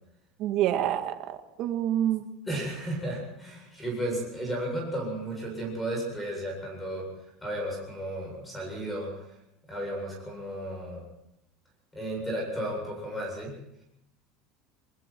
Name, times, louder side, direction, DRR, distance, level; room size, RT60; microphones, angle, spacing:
voice 1, 0.4-2.3, right 11 dB, 50° right, 7 dB, 1.9 m, -27 dB
voice 2, 2.5-7.1 7.4-9.2 9.7-11.0 11.9-13.6, right 1 dB, 10° left, 0 dB, 8.0 m, -33 dB
28.0 x 21.0 x 4.6 m, 0.81 s
cardioid pair, 155°, 0 cm